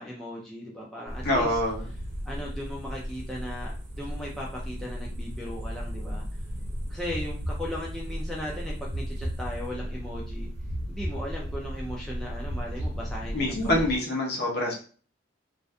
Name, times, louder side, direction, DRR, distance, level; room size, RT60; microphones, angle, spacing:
voice 1, 0.0-1.6 2.3-6.2 6.9-10.5 10.9-13.9, left 1 dB, ahead, -4 dB, 0.4 m, -37 dB
sound 1, 1.1-14.0, equal, 60° right, 0.8 m, -36 dB
voice 2, 1.2-1.8 13.3-14.7, left 1 dB, 50° left, -2 dB, 0.8 m, -25 dB
sound 2, 7.1-8.2 8.9-10.0 10.7-11.8 12.4-13.6, right 1 dB, 85° right, 0.5 m, -36 dB
2.5 x 2.5 x 2.2 m, 0.40 s
head